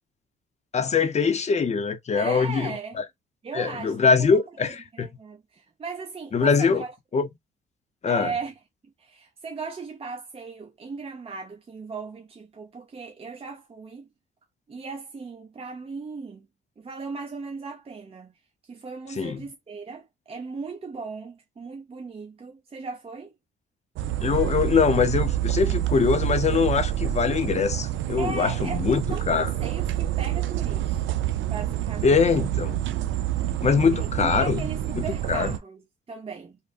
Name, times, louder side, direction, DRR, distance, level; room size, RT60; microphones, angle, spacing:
voice 1, 0.7-3.0 3.5-5.1 6.3-6.8 7.1-7.3 8.0-8.3 19.2-19.5 24.2-29.5 32.0-32.8 33.6-34.6 34.9-35.5, left 5 dB, 35° left, 0.6 m, -23 dB
voice 2, 2.1-3.0 3.4-6.9 8.1-8.5 9.0-14.1 14.7-16.5 16.8-18.3 18.7-23.3 28.2-28.8 29.1-32.2 34.0-36.6, right 4 dB, 30° right, 0.7 m, -37 dB
sound 1, 24.0-35.6, right 13 dB, 75° right, 0.5 m, -27 dB
3.3 x 2.1 x 2.4 m
cardioid pair, 90°, 20 cm